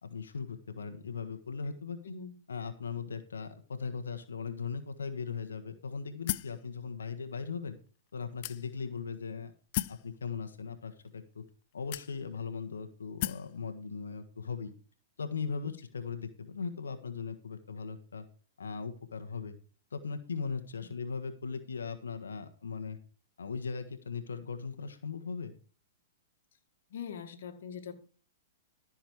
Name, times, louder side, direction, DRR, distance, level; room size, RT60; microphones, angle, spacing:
voice 1, 0.0-2.0 2.5-7.7 8.1-9.5 9.9-11.4 11.7-14.7 15.2-18.3 18.6-19.6 19.9-23.0 23.4-25.5, left 5 dB, 85° left, 8 dB, 1.5 m, -38 dB
voice 2, 2.0-2.4 15.6-15.7 26.9-27.9, left 7 dB, 65° left, 6 dB, 2.0 m, -42 dB
sound 1, 6.3-6.6 7.4-7.5 8.4-8.9 9.7-10.1 11.0-11.1 11.9-12.4 13.2-13.5, left 17 dB, 50° left, 0.5 m, -35 dB
13.5 x 6.5 x 4.7 m, 0.41 s
hypercardioid pair, 115°, 0 cm